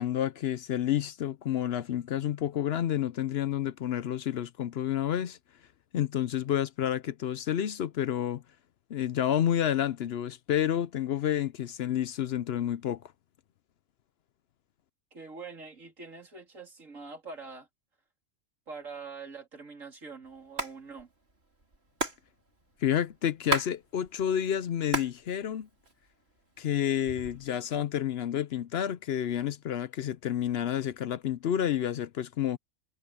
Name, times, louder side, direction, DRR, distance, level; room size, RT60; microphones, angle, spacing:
voice 1, 0.0-5.4 5.9-8.4 8.9-13.1 22.8-25.7 26.6-32.6, left 10 dB, 60° left, 0.8 m, -29 dB
voice 2, 15.1-17.7 18.7-21.1, right 4 dB, 90° right, 3.8 m, -44 dB
Hands, 20.4-20.7 21.0-21.1 21.3-23.7 24.0-25.2 25.5-26.3 26.9-27.5, right 2 dB, 55° right, 3.8 m, -33 dB
omnidirectional pair, 1.3 m